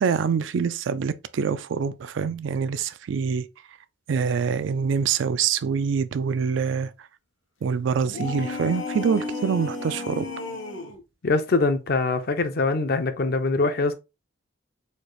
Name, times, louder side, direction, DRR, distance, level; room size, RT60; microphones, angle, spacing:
voice 1, 0.0-3.4 4.1-6.9 7.6-10.3, right 6 dB, 75° right, 0.3 m, -25 dB
sound 1, 8.0-11.0, left 3 dB, 80° left, 1.0 m, -33 dB
voice 2, 11.2-13.9, left 3 dB, 50° left, 0.5 m, -23 dB
4.3 x 2.4 x 3.1 m
head